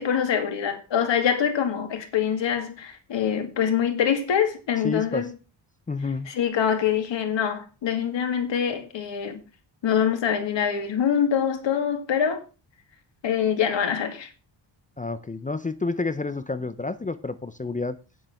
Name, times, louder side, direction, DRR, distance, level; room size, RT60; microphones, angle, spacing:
voice 1, 0.0-5.3 6.3-9.4 9.8-12.4 13.2-14.3, left 8 dB, 70° left, 2.3 m, -24 dB
voice 2, 4.8-5.3 5.9-6.3 15.0-18.0, left 3 dB, 15° left, 0.5 m, -29 dB
9.3 x 7.6 x 5.8 m
wide cardioid pair, 180°, 46 cm